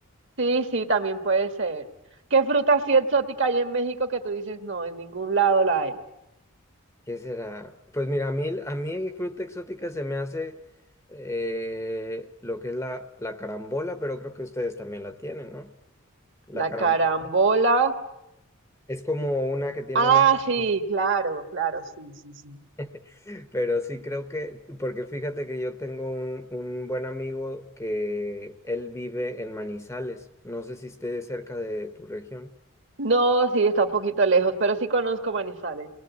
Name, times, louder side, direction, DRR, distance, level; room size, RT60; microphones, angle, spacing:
voice 1, 0.4-1.9 2.3-6.0 16.5-17.9 20.0-22.6 33.0-35.9, right 4 dB, 55° right, 7 dB, 1.6 m, -23 dB
voice 2, 7.1-10.6 11.1-15.7 16.5-16.9 17.2-17.3 18.9-20.3 22.8-32.5, left 1 dB, 15° left, 9 dB, 0.9 m, -32 dB
28.5 x 20.5 x 8.3 m, 0.90 s
head